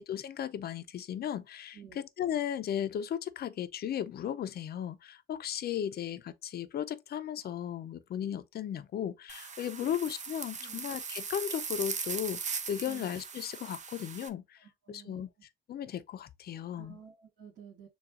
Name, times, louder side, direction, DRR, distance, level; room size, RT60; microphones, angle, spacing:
voice 1, 0.0-1.8 2.2-15.3 15.7-17.0, left 10 dB, 50° left, 0.5 m, -36 dB
voice 2, 1.7-2.1 9.8-10.0 10.6-10.8 12.9-13.1 14.6-15.3 16.8-17.9, right 8 dB, 65° right, 2.2 m, -52 dB
sound 1, 9.3-14.3, right 6 dB, 40° right, 0.7 m, -39 dB
6.8 x 2.3 x 2.4 m
cardioid pair, 90°, 20 cm